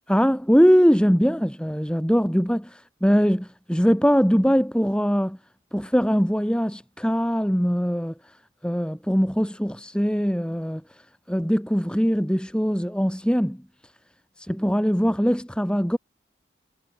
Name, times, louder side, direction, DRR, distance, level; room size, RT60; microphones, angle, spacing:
voice 1, 0.1-5.4 5.7-8.4 8.6-13.6 14.4-16.0, equal, 5° left, 7.1 m, -22 dB
head